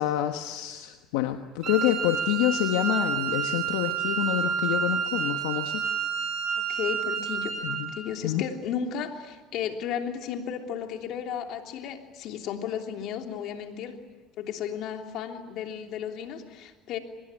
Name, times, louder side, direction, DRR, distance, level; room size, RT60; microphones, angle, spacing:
voice 1, 0.0-5.9 7.6-7.9 8.2-8.4, left 13 dB, 85° left, 6 dB, 1.2 m, -27 dB
Wind instrument woodwind instrument, 1.6-8.0, right 7 dB, 50° right, 7.3 m, -29 dB
voice 2, 6.6-7.6 7.9-14.0 14.4-17.0, left 8 dB, 65° left, 4 dB, 3.2 m, -34 dB
25.0 x 21.0 x 10.0 m, 1.3 s
supercardioid pair, 95°, 0 cm